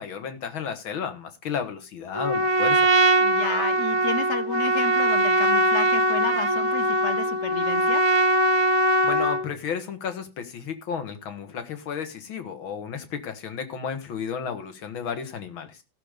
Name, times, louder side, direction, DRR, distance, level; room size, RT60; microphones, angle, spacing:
voice 1, 0.0-2.9 9.0-15.8, left 7 dB, 80° left, 2.4 m, -33 dB
Trumpet, 2.1-9.5, right 1 dB, 60° right, 0.3 m, -21 dB
voice 2, 3.2-8.0, left 6 dB, 45° left, 1.1 m, -32 dB
15.5 x 6.7 x 5.0 m
omnidirectional pair, 2.2 m